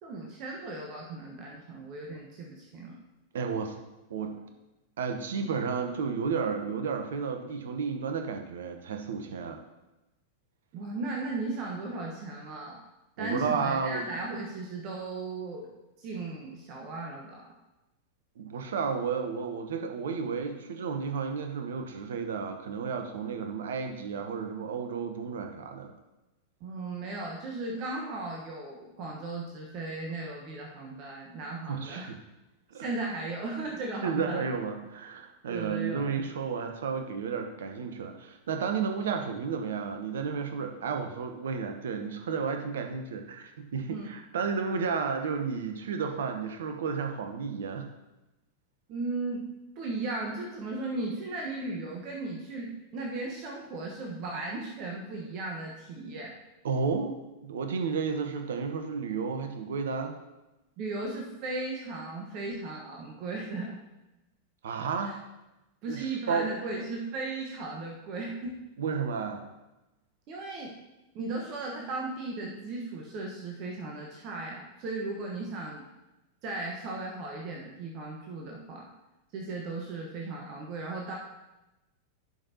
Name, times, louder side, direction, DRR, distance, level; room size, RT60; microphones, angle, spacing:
voice 1, 0.0-3.0 10.7-12.8 13.2-15.7 16.0-17.4 26.6-32.1 32.7-34.4 35.5-36.1 43.9-44.1 48.9-49.4 49.7-56.4 60.8-63.8 65.0-65.1 65.8-68.6 70.3-70.7 71.1-75.8 76.4-78.9 79.3-81.1, right 3 dB, 40° right, -1 dB, 1.2 m, -36 dB
voice 2, 3.3-3.8 4.1-4.5 5.0-9.6 13.2-14.0 18.4-25.9 31.7-32.1 32.7-32.8 34.0-47.9 56.6-57.1 57.4-60.1 64.6-65.1 65.9-66.5 68.8-69.4, right 5 dB, 60° right, 5 dB, 1.0 m, -32 dB
11.0 x 5.4 x 2.8 m, 0.99 s
figure-of-eight pair, 90°, 0 cm